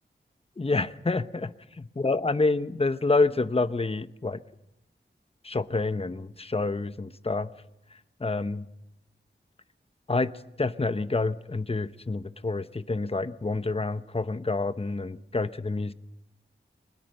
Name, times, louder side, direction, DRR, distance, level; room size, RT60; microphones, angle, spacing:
voice 1, 0.6-4.4 5.4-7.5 8.2-8.7 10.1-10.3 10.6-15.9, left 3 dB, 30° left, 12 dB, 0.8 m, -28 dB
22.0 x 20.5 x 6.6 m, 0.88 s
wide cardioid pair, 55°, 20 cm